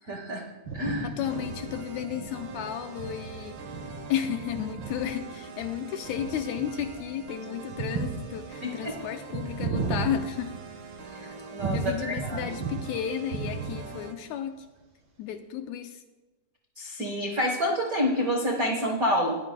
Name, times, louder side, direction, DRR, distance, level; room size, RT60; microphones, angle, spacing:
voice 1, 0.1-0.4 0.7-1.1 8.6-9.0 11.1-12.5 16.8-19.4, equal, 85° right, 1 dB, 0.7 m, -28 dB
sound 1, 0.6-11.1 11.6-12.9 13.2-14.1, right 4 dB, 45° right, 2.8 m, -35 dB
voice 2, 1.0-3.6 4.1-10.6 11.7-14.7 15.2-16.0, left 9 dB, 80° left, 7 dB, 1.7 m, -33 dB
sound 2, 1.2-14.1, right 4 dB, 60° right, 1.1 m, -43 dB
20.5 x 14.0 x 2.2 m, 1.2 s
omnidirectional pair, 3.7 m